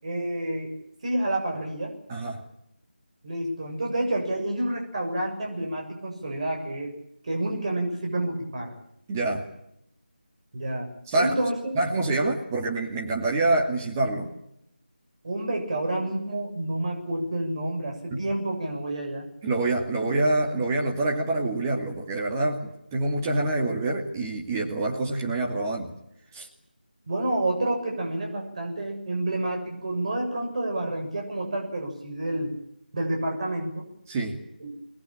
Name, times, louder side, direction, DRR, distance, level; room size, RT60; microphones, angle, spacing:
voice 1, 0.0-0.7 1.0-1.9 3.2-6.9 7.2-8.7 10.5-10.9 11.2-11.8 15.2-19.3 27.1-32.5 32.9-33.9 34.6-34.7, right 1 dB, 40° right, 2 dB, 6.9 m, -29 dB
voice 2, 2.1-2.4 9.1-9.5 11.1-11.3 11.8-14.3 18.1-18.2 19.4-25.9 26.3-26.5 34.1-34.4, right 2 dB, 15° right, 0 dB, 2.4 m, -26 dB
25.0 x 20.5 x 8.9 m, 0.79 s
figure-of-eight pair, 165°, 5 cm